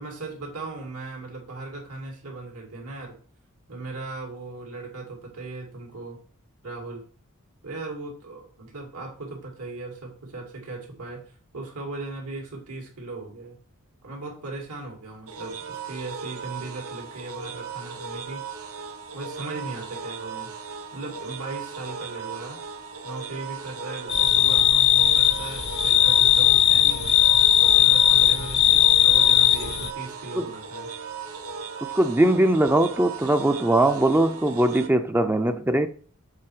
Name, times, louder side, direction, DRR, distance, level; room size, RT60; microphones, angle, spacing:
voice 1, 0.0-3.1 3.7-6.2 6.6-7.0 7.6-11.2 11.5-13.6 14.0-18.4 19.1-20.5 20.9-22.6 23.0-27.0 27.6-30.9, right 3 dB, 85° right, 2.5 m, -38 dB
sound 1, 15.3-34.9, right 5 dB, 70° right, 0.8 m, -37 dB
sound 2, 24.1-29.9, left 11 dB, 50° left, 0.6 m, -18 dB
voice 2, 31.8-35.9, right 1 dB, 10° right, 0.4 m, -21 dB
7.5 x 4.2 x 4.8 m
head